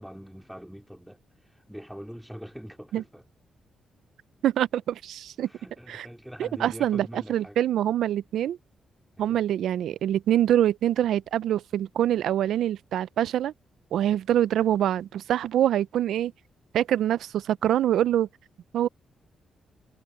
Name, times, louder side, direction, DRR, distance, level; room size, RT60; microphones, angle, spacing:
voice 1, 0.0-3.3 5.4-7.6 9.1-9.4, equal, ahead, 2.5 m, -43 dB
voice 2, 4.4-5.5 5.9-6.1 6.4-8.6 9.2-13.5 13.9-16.3 16.7-18.3 18.7-18.9, right 11 dB, 80° right, 0.4 m, -25 dB
wide cardioid pair, 165°, 0 cm